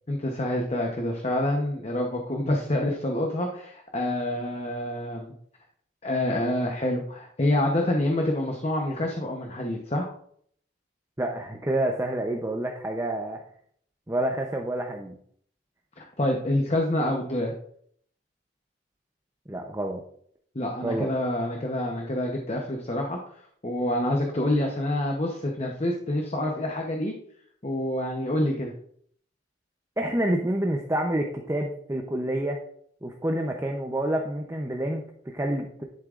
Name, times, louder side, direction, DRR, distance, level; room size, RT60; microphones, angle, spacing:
voice 1, 0.1-5.3 6.0-10.1 16.0-17.5 20.5-23.2 23.6-27.1 27.6-28.7, left 1 dB, 35° left, 1 dB, 0.9 m, -27 dB
voice 2, 11.2-13.4 14.1-15.1 19.5-20.0 20.8-21.1 30.0-32.6 33.0-35.8, right 1 dB, 15° right, 2 dB, 0.7 m, -28 dB
11.0 x 7.3 x 2.5 m, 0.64 s
head